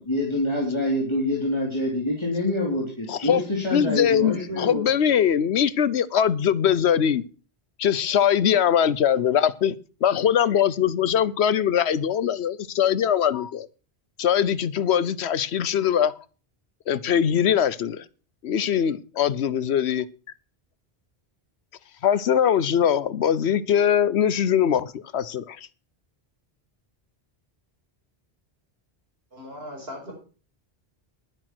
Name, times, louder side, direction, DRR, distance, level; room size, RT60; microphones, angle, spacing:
voice 1, 0.0-4.8, left 1 dB, 25° left, 3.5 m, -26 dB
voice 2, 3.1-3.4 3.7-7.2 7.8-9.8 10.0-13.7 14.2-16.1 16.9-18.0 18.4-20.1 22.0-25.6, left 9 dB, 85° left, 1.1 m, -22 dB
voice 3, 29.3-30.1, left 1 dB, 70° right, 5.7 m, -38 dB
11.0 x 10.5 x 6.1 m
omnidirectional pair, 1.1 m